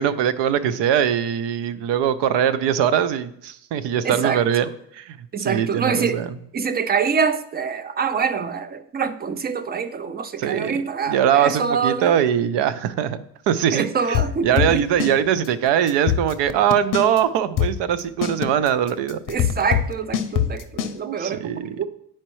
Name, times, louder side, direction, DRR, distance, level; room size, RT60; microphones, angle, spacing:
voice 1, 0.0-6.4 10.4-14.2 14.4-19.2 21.0-21.9, right 9 dB, 70° right, 15 dB, 0.6 m, -22 dB
voice 2, 4.0-4.4 5.3-6.2 6.5-12.2 13.7-14.8 19.3-21.8, right 6 dB, 25° right, 12 dB, 0.4 m, -25 dB
sound 1, 14.1-15.2 15.4-15.5 15.9-17.2 17.6-20.9, left 10 dB, 45° left, 0.6 m, -22 dB
9.8 x 4.4 x 3.1 m, 0.73 s
cardioid pair, 100°, 45 cm